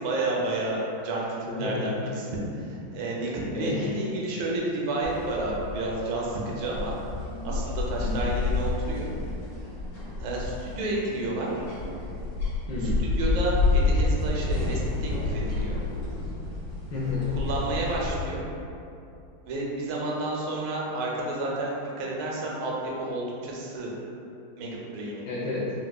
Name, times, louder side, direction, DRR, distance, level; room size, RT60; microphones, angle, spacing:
voice 1, 0.0-2.2 2.6-6.9 7.4-9.1 10.2-11.7 13.2-15.8 17.4-18.4 19.5-23.9 24.6-25.3, right 2 dB, 75° right, -3 dB, 1.3 m, -30 dB
voice 2, 1.5-1.9 3.5-4.2 8.0-8.3 12.7-13.1 16.9-17.4 25.3-25.7, left 3 dB, 75° left, -7 dB, 1.0 m, -30 dB
sound 1, 5.0-18.3, left 3 dB, 55° left, 1.5 m, -29 dB
4.6 x 2.2 x 2.2 m, 2.7 s
omnidirectional pair, 2.3 m